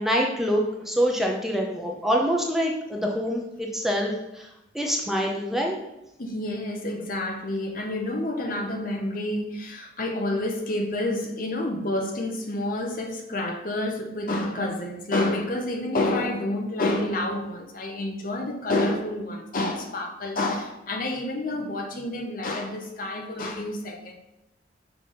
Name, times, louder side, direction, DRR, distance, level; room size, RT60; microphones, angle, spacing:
voice 1, 0.0-4.5 4.7-5.8, equal, ahead, 0 dB, 0.6 m, -25 dB
voice 2, 6.2-24.1, left 1 dB, 50° left, 3 dB, 0.9 m, -29 dB
5.9 x 3.4 x 5.5 m, 0.90 s
head